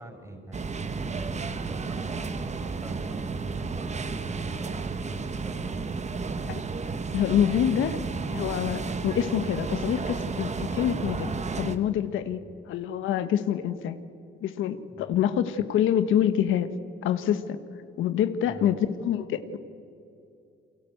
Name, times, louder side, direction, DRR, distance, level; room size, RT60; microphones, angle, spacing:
voice 1, 0.0-5.9 14.9-15.1 18.5-18.7, right 1 dB, 15° right, 6 dB, 5.7 m, -44 dB
sound 1, 0.5-11.8, right 4 dB, 35° right, 1.5 m, -32 dB
voice 2, 7.1-8.0 8.3-11.3 11.6-14.0 14.4-16.7 17.0-17.6 18.0-19.6, left 10 dB, 85° left, 10 dB, 1.3 m, -26 dB
29.0 x 24.0 x 7.9 m, 2.6 s
cardioid pair, 90°, 20 cm